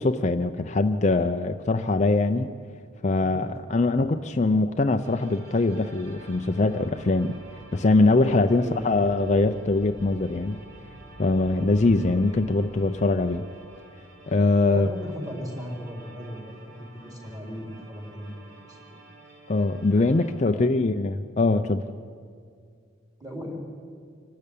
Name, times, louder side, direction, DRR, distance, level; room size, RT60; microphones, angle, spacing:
voice 1, 0.0-2.5 3.0-7.3 7.7-10.6 11.2-13.4 14.3-14.9 19.5-21.8, left 2 dB, 35° left, 8 dB, 0.5 m, -22 dB
sound 1, 5.0-20.3, right 2 dB, 60° right, 6.0 m, -51 dB
sound 2, 5.6-13.1, equal, 80° right, 5.9 m, -50 dB
voice 2, 8.5-9.0 14.7-19.0 20.4-20.7 23.2-23.6, equal, 20° right, 0 dB, 3.7 m, -37 dB
26.0 x 12.5 x 8.5 m, 2.2 s
head